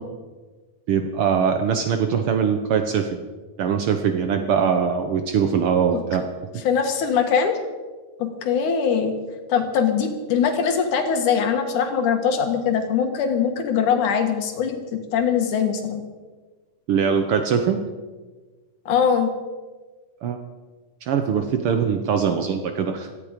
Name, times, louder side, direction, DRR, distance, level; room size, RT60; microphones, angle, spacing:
voice 1, 0.9-3.2 3.6-6.2 16.9-17.8 20.2-20.4 21.0-23.1, right 7 dB, 85° right, 6 dB, 1.2 m, -22 dB
voice 2, 6.6-7.6 8.2-9.1 9.5-16.0 18.9-19.3, left 7 dB, 70° left, 6 dB, 2.9 m, -22 dB
17.0 x 14.0 x 5.1 m, 1.3 s
omnidirectional pair, 3.8 m